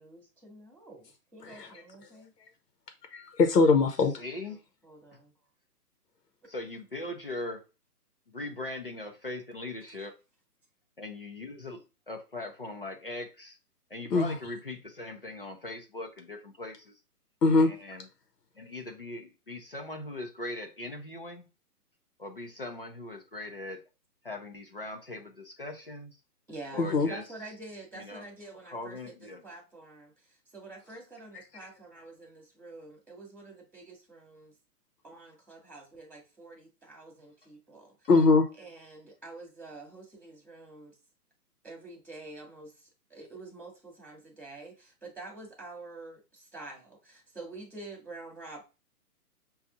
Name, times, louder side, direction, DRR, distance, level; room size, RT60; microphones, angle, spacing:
voice 1, 0.0-2.3 4.5-4.6 4.8-5.3 26.5-29.0 29.4-34.5 35.0-38.1 38.6-41.0 41.6-48.6, right 2 dB, ahead, 0.8 m, -47 dB
voice 2, 1.4-1.7 3.1-4.1 14.1-14.4 17.4-17.7 26.8-27.1 38.1-38.5, left 3 dB, 85° left, 1.0 m, -22 dB
voice 3, 4.2-4.6 6.5-7.6 8.3-10.2 11.0-11.8 12.1-13.6 13.9-17.0 17.6-18.0 18.6-21.4 22.2-23.8 24.2-26.2 26.7-27.2 27.9-28.2 28.7-29.4, left 2 dB, 35° left, 0.5 m, -40 dB
6.5 x 2.4 x 2.6 m
hypercardioid pair, 170°, 47 cm